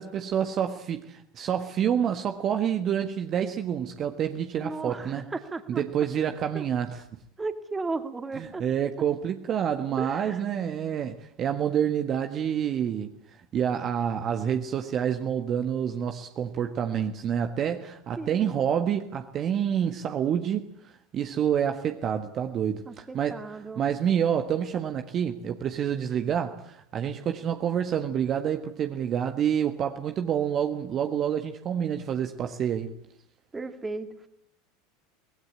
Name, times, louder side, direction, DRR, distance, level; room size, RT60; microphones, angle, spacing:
voice 1, 0.0-5.2 5.7-7.0 8.4-23.4 23.8-32.9, right 9 dB, 40° right, 1.5 m, -28 dB
voice 2, 4.6-5.8 6.5-6.6 7.4-8.6 10.0-10.4 18.2-18.6 22.9-23.8 33.5-34.3, right 3 dB, 15° right, 2.6 m, -35 dB
24.5 x 19.0 x 8.7 m
hypercardioid pair, 80°, 0 cm